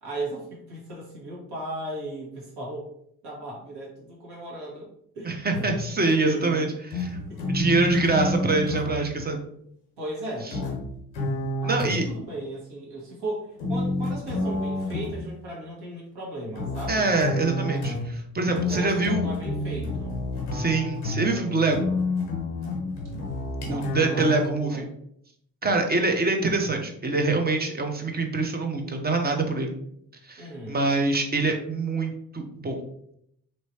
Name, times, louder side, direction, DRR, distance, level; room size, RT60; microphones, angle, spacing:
voice 1, 0.0-2.9 3.2-4.9 5.1-5.4 6.0-6.7 7.3-7.6 10.0-10.5 11.6-17.2 18.6-20.2 23.6-24.8 25.6-25.8 30.4-30.8, right 1 dB, 60° right, -3 dB, 1.5 m, -36 dB
voice 2, 5.2-6.7 7.0-7.2 7.5-9.4 11.6-12.0 16.9-19.3 20.5-21.9 23.7-24.9 25.6-29.7 30.3-32.8, right 3 dB, 20° right, 3 dB, 0.7 m, -25 dB
sound 1, 5.5-6.0 6.9-9.0 10.5-12.3 13.6-15.3 16.5-24.4, left 2 dB, 85° left, 0.7 m, -29 dB
3.1 x 3.0 x 2.8 m, 0.72 s
hypercardioid pair, 45°, 44 cm